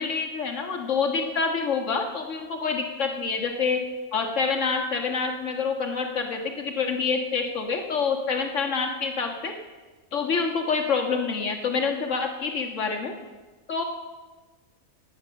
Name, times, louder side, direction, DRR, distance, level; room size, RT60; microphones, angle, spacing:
voice 1, 0.0-3.8 4.1-9.5 10.1-13.1 13.7-13.8, left 5 dB, 60° left, 3 dB, 1.9 m, -27 dB
16.5 x 9.9 x 6.5 m, 1.3 s
omnidirectional pair, 1.5 m